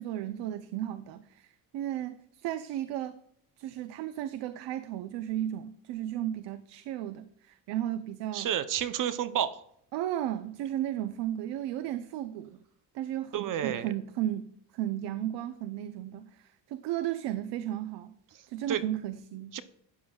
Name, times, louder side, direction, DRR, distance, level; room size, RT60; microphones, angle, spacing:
voice 1, 0.0-3.2 3.6-8.5 9.9-12.6 12.9-18.1 18.5-19.6, right 12 dB, 85° right, 0.8 m, -34 dB
voice 2, 8.3-9.6 13.3-13.9 18.3-18.4 18.7-18.8 19.5-19.6, right 10 dB, 50° right, 0.8 m, -30 dB
12.5 x 9.5 x 2.3 m
cardioid pair, 135°, 41 cm